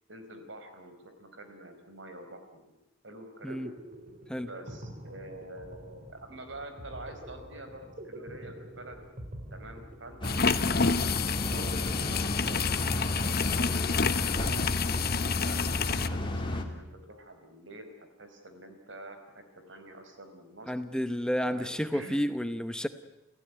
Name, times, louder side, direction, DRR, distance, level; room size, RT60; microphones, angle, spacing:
voice 1, 0.1-2.6 3.0-3.6 4.4-9.0 9.5-11.0 11.3-14.7 15.2-17.9 18.2-19.2 19.5-20.7 21.4-22.2, right 2 dB, 70° right, 7 dB, 4.7 m, -47 dB
sound 1, 3.5-14.0, equal, 45° right, 4.6 m, -46 dB
sound 2, 10.2-16.1, left 5 dB, 50° left, 0.9 m, -29 dB
sound 3, 10.2-16.6, left 1 dB, 25° left, 2.6 m, -32 dB
voice 2, 20.7-22.9, equal, 5° left, 10 dB, 0.8 m, -31 dB
29.5 x 15.5 x 9.4 m, 0.95 s
head